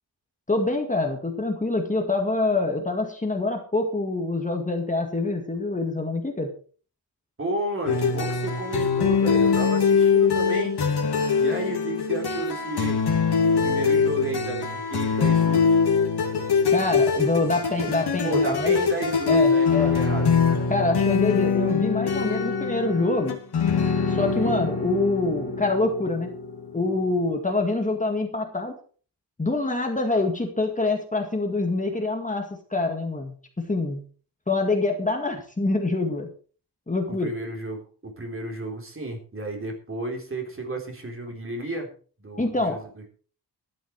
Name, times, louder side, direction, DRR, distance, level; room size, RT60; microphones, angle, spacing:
voice 1, 0.5-6.5 16.7-18.7 19.3-19.9 20.7-23.4 24.1-26.3 26.7-28.7 29.4-34.0 34.5-36.3 36.9-37.3 42.4-42.8, left 2 dB, 20° left, 3 dB, 2.0 m, -25 dB
voice 2, 7.4-10.8 11.3-13.0 13.6-15.8 18.2-20.7 24.1-24.6 37.1-41.9 42.2-43.1, right 2 dB, 30° right, 2 dB, 3.8 m, -32 dB
sound 1, 7.9-27.2, left 5 dB, 70° left, 2.8 m, -23 dB
13.0 x 11.0 x 4.7 m, 0.41 s
wide cardioid pair, 135°, 41 cm